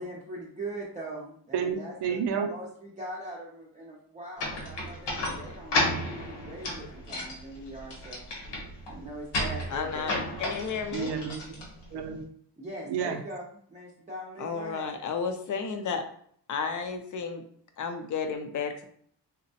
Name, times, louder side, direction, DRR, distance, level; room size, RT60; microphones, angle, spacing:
voice 1, 0.0-5.9 6.3-8.2 8.9-10.4 12.6-14.9, right 1 dB, 20° right, -5 dB, 0.5 m, -41 dB
voice 2, 1.5-2.5 10.9-12.2 12.9-13.2, right 7 dB, 80° right, 4 dB, 0.5 m, -31 dB
sound 1, 4.4-12.2, left 1 dB, 85° left, 1.0 m, -33 dB
voice 3, 9.7-11.1 14.4-16.0 16.5-17.4 17.8-18.9, left 5 dB, 50° left, 6 dB, 0.5 m, -32 dB
3.9 x 2.1 x 2.7 m, 0.62 s
wide cardioid pair, 145°, 41 cm